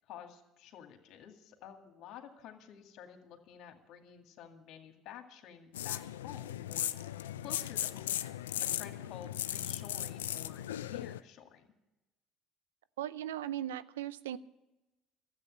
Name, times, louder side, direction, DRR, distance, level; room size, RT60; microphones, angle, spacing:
voice 1, 0.1-8.1 8.7-11.7, left 9 dB, 65° left, 4 dB, 2.1 m, -51 dB
sound 1, 5.7-11.2, left 12 dB, 85° left, 0.4 m, -37 dB
voice 2, 13.0-14.4, right 11 dB, 85° right, 16 dB, 0.5 m, -38 dB
13.5 x 8.4 x 9.7 m, 0.96 s
hypercardioid pair, 65°, 0 cm